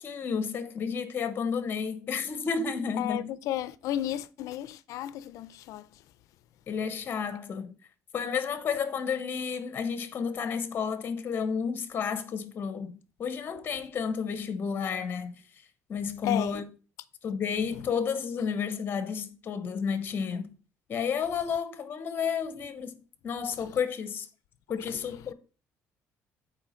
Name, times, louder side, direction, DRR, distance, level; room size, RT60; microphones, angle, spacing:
voice 1, 0.0-3.3 6.7-7.7 8.1-15.3 15.9-16.6 17.2-20.5 20.9-22.9 23.2-24.3 24.7-25.3, left 6 dB, 35° left, 0.9 m, -31 dB
voice 2, 3.0-6.0 16.2-16.6 23.6-23.7 24.9-25.3, left 13 dB, 75° left, 0.5 m, -34 dB
8.7 x 4.5 x 4.3 m
cardioid pair, 150°, 6 cm